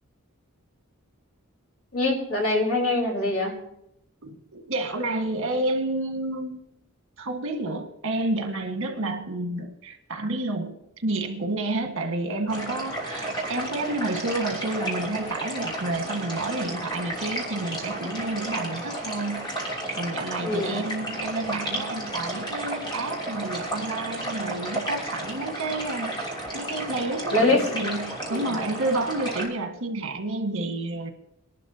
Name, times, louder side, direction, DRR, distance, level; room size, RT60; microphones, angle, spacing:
voice 1, 1.9-3.5 20.4-20.8 27.3-27.7 28.3-28.5, left 2 dB, 70° left, 4.3 m, -23 dB
voice 2, 4.2-6.7 7.2-31.1, right 2 dB, 65° right, 1.7 m, -30 dB
sound 1, 12.5-29.5, right 1 dB, 20° left, 3.0 m, -33 dB
23.0 x 11.5 x 2.8 m
head